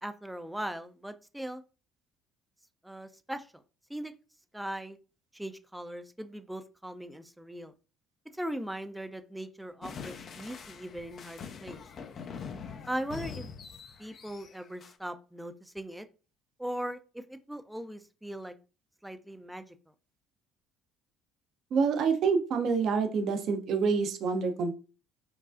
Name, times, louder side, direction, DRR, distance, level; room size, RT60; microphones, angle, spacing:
voice 1, 0.0-1.6 2.8-3.5 3.9-4.1 4.5-5.0 5.3-7.7 8.3-11.8 12.9-13.5 14.0-16.1 16.6-18.5 19.0-19.7, right 1 dB, 5° right, 9 dB, 0.4 m, -39 dB
sound 1, 9.8-14.9, left 6 dB, 50° left, 0.5 m, -44 dB
voice 2, 21.7-24.8, right 5 dB, 60° right, 6 dB, 0.7 m, -27 dB
4.7 x 2.3 x 2.5 m, 0.34 s
hypercardioid pair, 65°, 0 cm